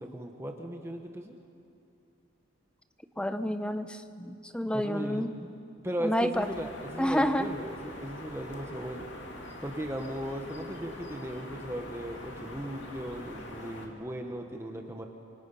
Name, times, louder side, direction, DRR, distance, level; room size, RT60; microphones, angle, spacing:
voice 1, 0.0-1.4 4.7-5.3 5.8-9.1 9.6-15.1, equal, 15° right, 3 dB, 1.3 m, -37 dB
voice 2, 3.2-5.3 6.0-6.5 7.0-7.5, equal, 5° left, 10 dB, 0.7 m, -29 dB
sound 1, 6.3-13.9, left 1 dB, 60° left, 2.7 m, -44 dB
28.0 x 25.5 x 5.6 m, 2.6 s
head